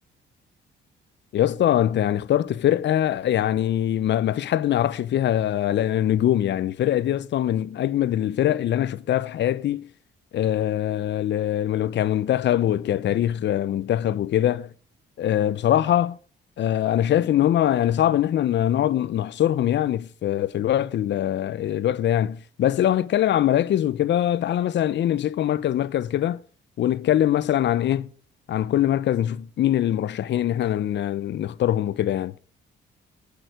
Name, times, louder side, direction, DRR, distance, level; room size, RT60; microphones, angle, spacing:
voice 1, 1.3-9.9 10.3-14.7 15.2-16.2 16.6-26.4 26.8-28.1 28.5-32.3, left 11 dB, 65° left, 0.7 m, -23 dB
16.0 x 6.7 x 5.0 m
cardioid pair, 90°, 20 cm